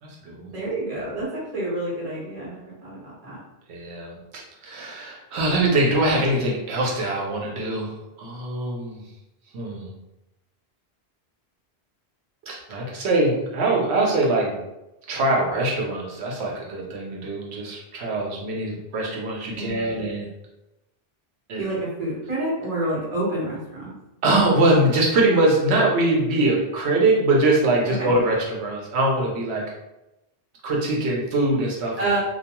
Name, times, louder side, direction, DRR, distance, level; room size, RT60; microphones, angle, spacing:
voice 1, 0.0-0.5 3.7-9.0 9.5-9.9 12.5-14.6 15.1-20.3 21.5-21.6 24.2-29.6 30.6-32.2, right 2 dB, 90° right, -2 dB, 0.9 m, -23 dB
voice 2, 0.5-3.4 19.5-20.0 21.6-23.9 28.0-28.1 32.0-32.2, right 2 dB, 40° right, -6 dB, 1.0 m, -28 dB
2.3 x 2.2 x 2.8 m, 0.97 s
omnidirectional pair, 1.1 m